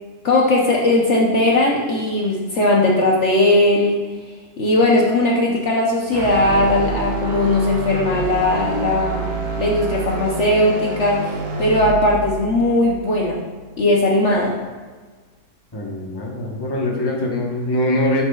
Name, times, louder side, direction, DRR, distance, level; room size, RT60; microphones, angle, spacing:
voice 1, 0.2-4.1 4.6-9.3 9.6-13.4 13.8-14.6, left 1 dB, 55° left, -2 dB, 1.0 m, -18 dB
sound 1, 6.1-14.3, right 3 dB, 90° right, 1.5 m, -28 dB
voice 2, 15.7-18.2, left 1 dB, 20° left, -2 dB, 1.0 m, -22 dB
9.6 x 7.1 x 2.3 m, 1.4 s
omnidirectional pair, 1.6 m